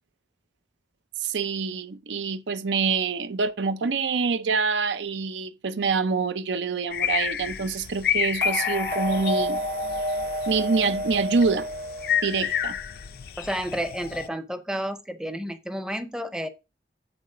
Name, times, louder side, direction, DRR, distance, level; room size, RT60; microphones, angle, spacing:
voice 1, 1.2-9.6 10.5-11.7 12.2-12.8, right 4 dB, 90° right, 0.6 m, -26 dB
sound 1, 6.9-14.3, left 9 dB, 55° left, 0.4 m, -30 dB
sound 2, 8.4-12.6, equal, 55° right, 1.2 m, -30 dB
voice 2, 13.4-16.5, equal, 5° right, 0.5 m, -31 dB
8.9 x 4.1 x 3.8 m
head